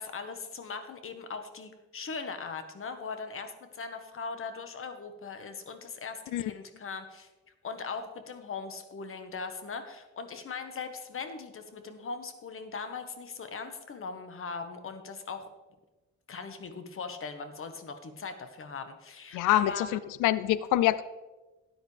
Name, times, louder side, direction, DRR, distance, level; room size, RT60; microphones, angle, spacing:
voice 1, 0.0-7.3 7.6-15.5 16.3-19.9, left 5 dB, 45° left, 8 dB, 1.3 m, -40 dB
voice 2, 19.3-19.9 20.2-21.0, left 14 dB, 85° left, 16 dB, 0.5 m, -25 dB
13.0 x 9.5 x 3.4 m, 1.1 s
cardioid pair, 90°, 30 cm